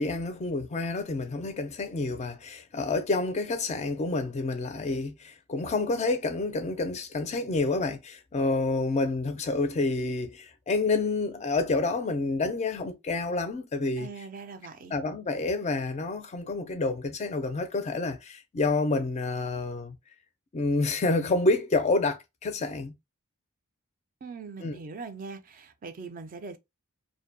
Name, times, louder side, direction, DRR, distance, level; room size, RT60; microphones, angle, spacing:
voice 1, 0.0-14.1 14.9-20.0 20.5-22.9 24.6-24.8, left 3 dB, 30° left, 0.4 m, -28 dB
voice 2, 14.0-14.9 24.2-26.6, right 4 dB, 40° right, 0.3 m, -41 dB
2.6 x 2.1 x 2.5 m
head